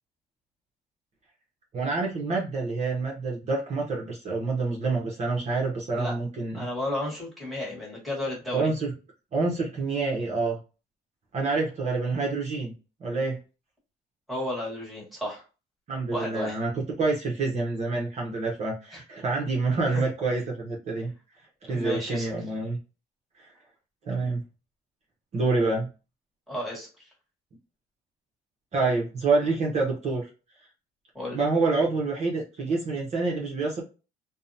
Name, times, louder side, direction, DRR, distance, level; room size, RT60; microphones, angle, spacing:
voice 1, 1.7-6.7 8.5-8.9 9.3-10.6 11.3-12.7 13.0-13.4 15.9-21.1 21.6-22.8 23.4-23.5 24.0-24.4 25.3-25.9 28.7-30.3 31.3-33.8, right 3 dB, 40° right, -2 dB, 0.7 m, -27 dB
voice 2, 6.5-8.7 14.3-15.4 16.1-16.6 18.9-19.0 19.9-20.0 21.7-22.3 26.5-27.1 31.1-31.4, left 1 dB, ahead, -4 dB, 1.4 m, -33 dB
2.7 x 2.0 x 2.6 m, 0.32 s
cardioid pair, 110°, 17 cm